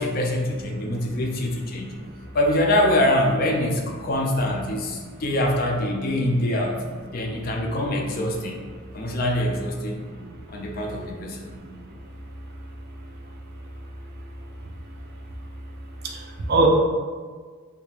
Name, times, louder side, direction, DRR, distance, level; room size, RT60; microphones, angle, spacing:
voice 1, 0.0-1.9 2.3-6.8 7.1-8.6 8.9-10.0 10.5-11.4, left 1 dB, 40° left, 1 dB, 0.4 m, -24 dB
voice 2, 11.2-11.5 16.0-16.7, right 2 dB, 45° right, 0 dB, 0.4 m, -25 dB
3.4 x 2.4 x 3.3 m, 1.6 s
head